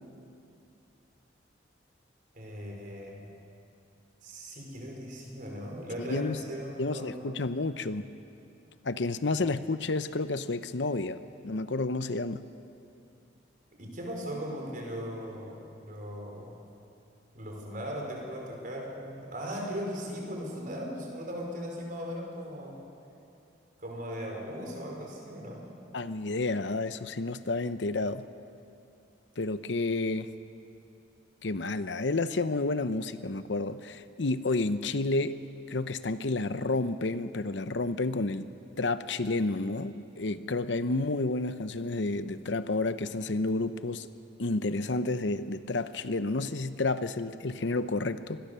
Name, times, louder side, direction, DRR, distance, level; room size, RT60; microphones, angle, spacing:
voice 1, 2.3-3.2 4.2-7.3 13.8-16.6 17.3-22.8 23.8-25.7, equal, 45° right, 0 dB, 4.9 m, -38 dB
voice 2, 6.0-6.4 6.8-8.0 8.8-12.4 25.9-28.2 29.4-30.3 31.4-35.4 35.7-38.5 38.8-44.1 44.4-48.4, left 2 dB, 70° left, 12 dB, 0.8 m, -30 dB
25.5 x 21.0 x 6.9 m, 2.7 s
head